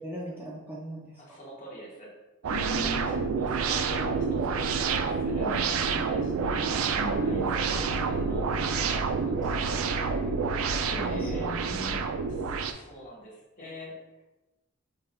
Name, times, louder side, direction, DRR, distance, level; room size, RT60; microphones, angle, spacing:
voice 1, 0.0-1.4 2.5-3.3 5.4-5.6 7.0-7.5 10.9-12.0, equal, 10° right, -5 dB, 0.5 m, -38 dB
voice 2, 1.2-2.1 2.6-6.6 7.1-10.4 10.9-11.6 12.3-14.2, equal, 40° left, -4 dB, 1.1 m, -46 dB
sound 1, 2.4-12.7, right 5 dB, 80° right, 0.3 m, -28 dB
sound 2, 3.7-8.1, left 7 dB, 70° left, 0.7 m, -46 dB
5.4 x 3.4 x 2.2 m, 1.0 s
head